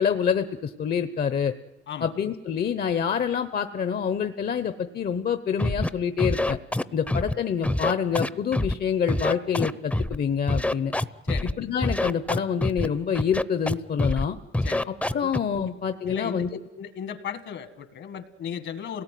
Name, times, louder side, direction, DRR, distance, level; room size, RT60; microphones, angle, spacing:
voice 1, 0.0-1.5 2.0-6.6 6.9-10.9 11.6-14.4 15.1-16.5, left 7 dB, 50° left, 10 dB, 0.9 m, -26 dB
Scratching (performance technique), 5.6-5.9 6.2-7.3 7.6-8.7 9.1-10.2 10.5-11.5 11.8-12.9 13.1-13.7 14.0-14.2 14.5-15.4, left 1 dB, 5° left, 0.7 m, -25 dB
voice 2, 16.1-16.5 16.8-19.0, left 8 dB, 70° left, 10 dB, 1.9 m, -35 dB
27.5 x 18.5 x 9.3 m, 1.2 s
cardioid pair, 90°, 20 cm